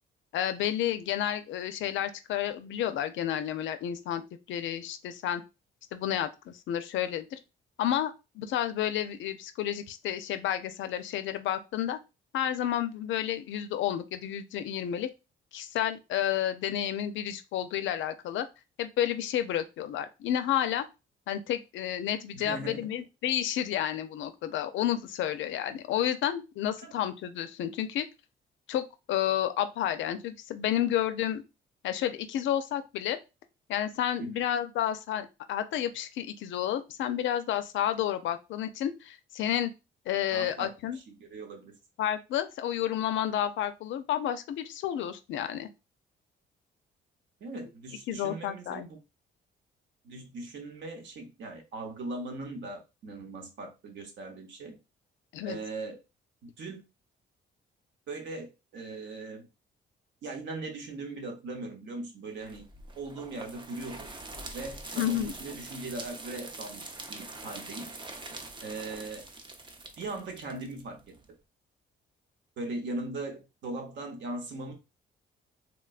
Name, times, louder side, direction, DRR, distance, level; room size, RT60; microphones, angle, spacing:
voice 1, 0.3-4.2 4.5-5.4 5.9-7.4 7.8-12.0 12.3-15.1 15.5-18.5 18.8-20.9 21.3-28.1 28.7-31.4 31.8-33.2 33.7-39.7 40.1-41.0 42.0-45.7 48.1-48.9 55.3-55.6 65.0-65.3, left 11 dB, 75° left, 0.4 m, -31 dB
voice 2, 22.3-22.9 26.8-26.9 34.2-34.4 40.3-41.7 47.4-49.0 50.0-54.8 55.5-56.0 56.4-56.8 58.1-59.5 60.2-62.7 63.0-64.1 64.5-66.8 67.1-67.9 68.6-69.2 70.0-71.1 72.6-74.7, right 2 dB, 70° right, 0.9 m, -39 dB
sound 1, 62.4-71.3, right 2 dB, 25° right, 0.5 m, -44 dB
3.1 x 2.2 x 2.3 m
cardioid pair, 90°, 20 cm